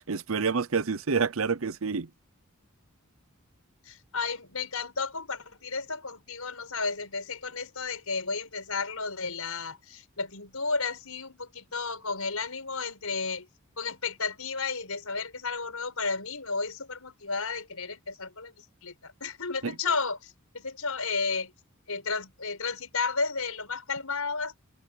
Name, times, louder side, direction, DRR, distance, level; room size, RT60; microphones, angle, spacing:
voice 1, 0.0-2.1 19.6-19.7, right 5 dB, 70° right, 0.8 m, -28 dB
voice 2, 3.9-13.5 13.8-21.5 21.9-24.6, left 4 dB, 90° left, 5.3 m, -33 dB
head